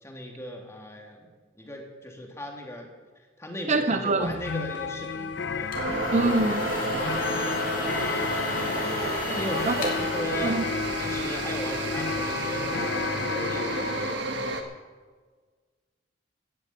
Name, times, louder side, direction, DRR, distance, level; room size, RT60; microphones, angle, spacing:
voice 1, 0.0-1.3 1.6-2.9 3.4-5.7 6.8-7.4 7.9-8.4 9.2-10.6 11.0-14.3, equal, 15° left, 2.2 m, -37 dB
voice 2, 3.7-4.3 6.1-6.7 9.7-9.8 10.4-10.6, right 2 dB, 35° right, 0.5 m, -24 dB
sound 1, 4.2-14.1, left 5 dB, 65° left, 0.5 m, -32 dB
sound 2, 5.5-11.2, left 2 dB, 45° left, 2.8 m, -35 dB
sound 3, 5.7-14.6, right 2 dB, 65° right, 1.5 m, -31 dB
14.5 x 7.1 x 9.1 m
head